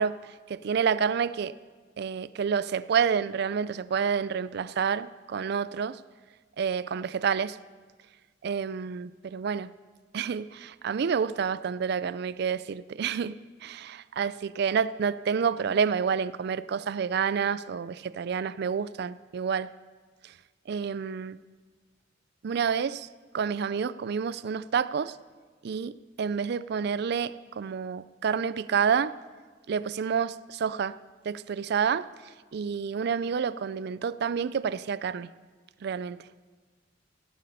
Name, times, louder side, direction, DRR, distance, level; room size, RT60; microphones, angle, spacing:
voice 1, 0.0-1.5 2.0-6.0 6.6-7.6 8.4-9.7 10.1-19.7 20.2-20.4 20.7-21.4 22.4-23.1 23.3-25.2 25.6-29.1 29.7-31.0 31.2-35.3 35.8-36.3, right 6 dB, 60° right, 16 dB, 0.4 m, -29 dB
17.5 x 8.4 x 5.4 m, 1.4 s
head